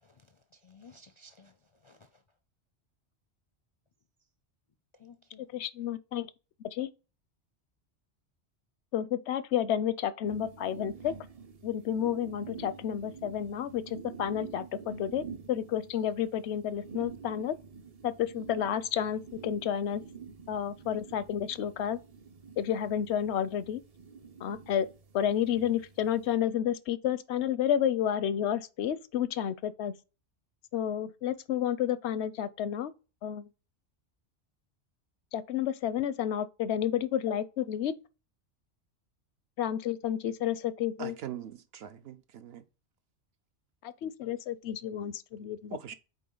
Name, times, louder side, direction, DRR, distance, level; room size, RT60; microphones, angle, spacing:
voice 1, 0.0-2.2 4.9-5.5, left 3 dB, 45° left, 0.4 m, -57 dB
voice 2, 5.5-6.3 6.6-6.9 8.9-11.1 11.6-17.6 18.0-20.0 20.5-22.0 22.6-23.8 24.4-24.9 25.1-29.9 30.7-32.9 33.2-33.4 35.3-37.9 39.6-41.1 44.0-45.8, left 10 dB, 85° left, 0.9 m, -31 dB
sound 1, 10.3-26.4, right 5 dB, 40° right, 0.6 m, -48 dB
voice 3, 41.0-42.6 45.7-45.9, right 9 dB, 70° right, 0.9 m, -42 dB
8.5 x 3.5 x 3.8 m
omnidirectional pair, 1.1 m